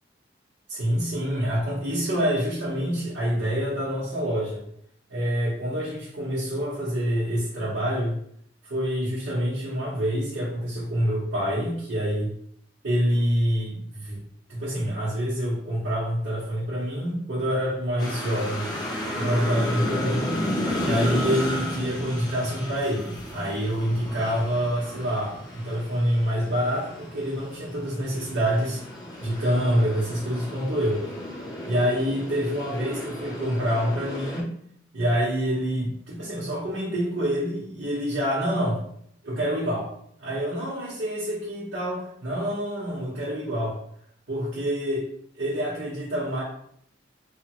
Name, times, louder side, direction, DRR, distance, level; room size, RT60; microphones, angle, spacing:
voice 1, 0.7-4.6 5.1-8.1 8.6-12.3 12.8-14.2 14.5-18.7 19.2-20.4 20.8-28.8 29.2-31.0 31.6-34.5 34.9-38.8 39.2-39.9 40.2-43.8 44.3-45.1 45.4-46.4, equal, 75° right, -9 dB, 1.0 m, -26 dB
sound 1, 18.0-34.4, left 1 dB, 20° left, 0.5 m, -33 dB
3.2 x 2.0 x 3.0 m, 0.67 s
head